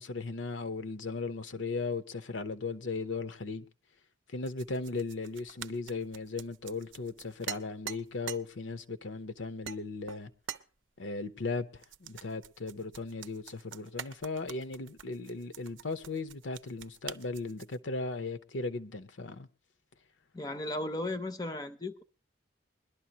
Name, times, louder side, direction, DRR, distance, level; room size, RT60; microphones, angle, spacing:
voice 1, 0.0-3.7 4.3-10.3 11.0-19.5, left 3 dB, 80° left, 0.8 m, -37 dB
sound 1, 4.4-8.4 9.1-9.2 9.6-9.8 10.1-10.6 11.8-17.8, right 9 dB, 80° right, 0.6 m, -45 dB
voice 2, 20.3-22.0, left 1 dB, 20° left, 0.5 m, -35 dB
21.5 x 12.0 x 2.9 m
head